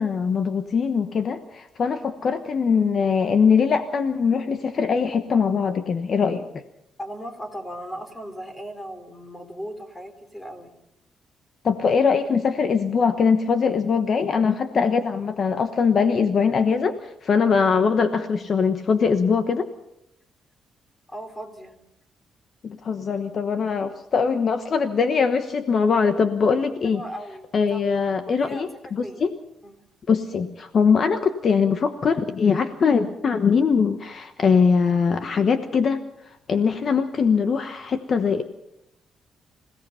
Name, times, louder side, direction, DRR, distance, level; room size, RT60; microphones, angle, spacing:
voice 1, 0.0-6.5 11.6-19.7 22.6-27.0 27.5-29.3 30.1-38.4, left 5 dB, 45° left, 8 dB, 1.1 m, -22 dB
voice 2, 7.0-10.7 21.1-21.7 26.9-27.8 28.3-29.3 29.6-29.8, equal, 10° left, 6 dB, 3.6 m, -37 dB
27.0 x 17.0 x 5.7 m, 0.84 s
cardioid pair, 125°, 0 cm